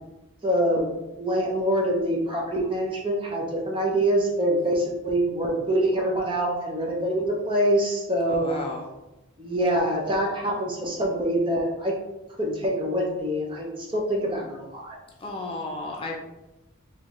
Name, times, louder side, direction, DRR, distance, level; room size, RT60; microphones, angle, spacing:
voice 1, 0.4-0.9 1.2-8.6 9.4-12.0 12.4-15.0, right 1 dB, 20° right, 0 dB, 0.6 m, -25 dB
voice 2, 8.3-8.8 15.2-16.1, left 2 dB, 25° left, 0 dB, 0.4 m, -33 dB
3.8 x 3.1 x 3.0 m, 0.97 s
head